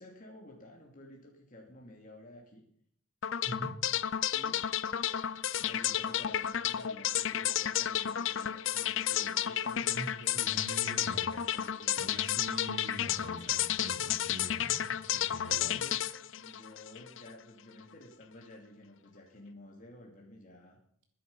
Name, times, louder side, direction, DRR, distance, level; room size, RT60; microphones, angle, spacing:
voice 1, 0.0-2.6 4.3-4.7 5.6-12.1 15.4-20.8, left 1 dB, 35° left, 0 dB, 2.6 m, -52 dB
sound 1, 3.2-17.3, left 10 dB, 55° left, 0.5 m, -32 dB
voice 2, 3.4-3.8 9.8-11.3 12.0-15.8, right 1 dB, 55° right, 4 dB, 3.2 m, -44 dB
20.5 x 10.0 x 5.5 m, 0.66 s
head